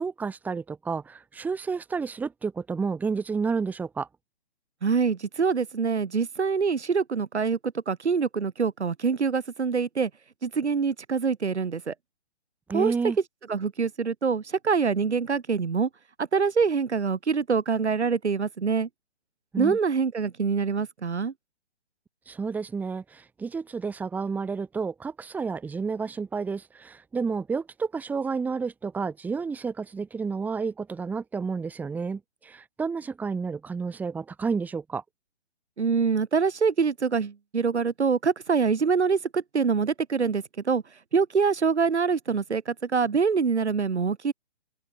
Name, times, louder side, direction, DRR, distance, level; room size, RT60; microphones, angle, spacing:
voice 1, 0.0-4.1 12.7-13.2 19.5-19.8 22.3-35.0, right 5 dB, 5° right, 2.9 m, -30 dB
voice 2, 4.8-10.1 10.4-11.9 12.7-12.9 13.5-15.9 16.2-18.9 19.6-21.3 35.8-40.8 41.1-44.3, right 5 dB, 90° right, 6.5 m, -25 dB
open air
hypercardioid pair, 165°, 33 cm